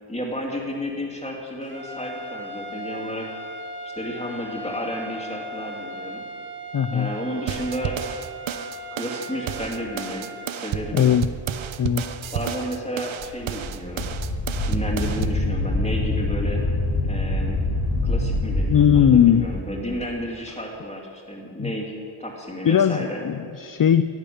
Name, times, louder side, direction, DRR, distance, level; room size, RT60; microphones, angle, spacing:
voice 1, 0.1-3.3 3.8-6.2 6.9-8.0 8.9-11.1 12.3-14.1 14.6-16.6 17.1-17.6 18.0-21.9 22.2-23.2, equal, 15° left, -1 dB, 2.9 m, -32 dB
sound 1, 1.6-10.6, right 1 dB, 25° right, 1.9 m, -37 dB
voice 2, 6.7-7.1 10.9-11.3 11.8-12.0 18.7-19.5 21.6-21.7 22.6-24.0, left 9 dB, 45° left, 12 dB, 0.5 m, -18 dB
sound 2, 7.5-15.5, right 9 dB, 70° right, 0.8 m, -31 dB
Wind, 13.2-19.6, left 2 dB, 70° left, 2.5 m, -25 dB
11.5 x 10.5 x 8.7 m, 2.3 s
wide cardioid pair, 85°, 49 cm